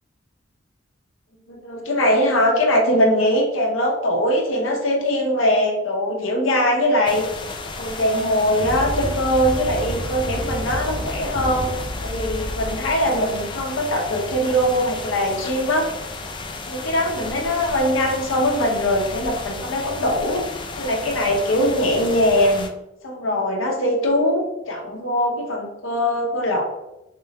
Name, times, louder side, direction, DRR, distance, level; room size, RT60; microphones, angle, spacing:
voice 1, 1.5-7.3 7.8-11.7 12.0-15.9 16.7-20.4 20.8-22.7 23.0-26.6, equal, 85° left, -1 dB, 0.8 m, -21 dB
sound 1, 7.1-22.7, left 3 dB, 25° left, 0.4 m, -33 dB
sound 2, 8.6-13.8, equal, 5° right, 0.7 m, -30 dB
3.3 x 3.1 x 2.8 m, 0.93 s
head